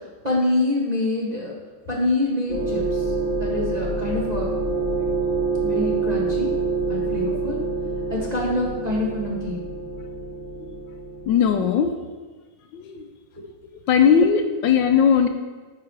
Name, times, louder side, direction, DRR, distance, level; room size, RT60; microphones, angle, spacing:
voice 1, 0.2-1.6 1.9-3.1 3.4-4.5 5.6-6.5 6.9-7.6 8.1-9.7, left 2 dB, 25° right, -4 dB, 1.0 m, -25 dB
sound 1, 2.5-11.6, right 3 dB, 5° left, 0.7 m, -26 dB
voice 2, 11.3-11.9 12.7-13.0 13.9-15.3, left 7 dB, 75° left, 7 dB, 1.2 m, -18 dB
9.8 x 4.8 x 4.6 m, 1.4 s
omnidirectional pair, 2.2 m